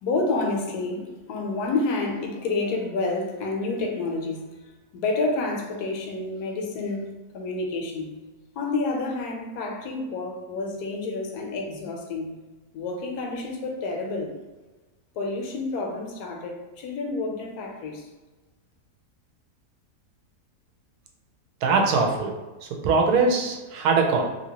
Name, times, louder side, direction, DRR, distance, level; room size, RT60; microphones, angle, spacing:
voice 1, 0.0-4.4 4.9-8.1 8.6-12.3 12.7-14.3 15.2-18.1, left 3 dB, 85° left, 2 dB, 1.1 m, -29 dB
voice 2, 21.6-24.3, right 4 dB, 80° right, 2 dB, 1.1 m, -22 dB
2.9 x 2.7 x 2.8 m, 1.2 s
omnidirectional pair, 1.7 m